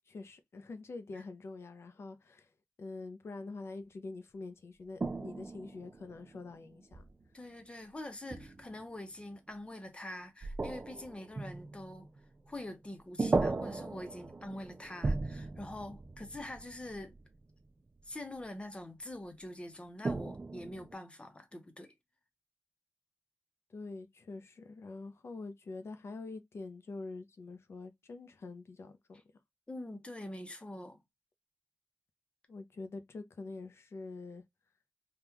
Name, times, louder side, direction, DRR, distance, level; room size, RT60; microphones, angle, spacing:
voice 1, 0.1-2.5 2.8-7.0 23.7-29.2 32.5-34.4, left 3 dB, 80° left, 0.6 m, -45 dB
sound 1, 5.0-7.2 8.3-8.8 10.4-12.8 13.2-17.4 20.0-20.9, right 3 dB, 40° right, 0.4 m, -37 dB
voice 2, 7.3-12.1 12.5-17.1 18.0-21.9 29.7-31.0, left 1 dB, 25° left, 0.8 m, -45 dB
3.5 x 2.4 x 2.8 m
wide cardioid pair, 110°, 4 cm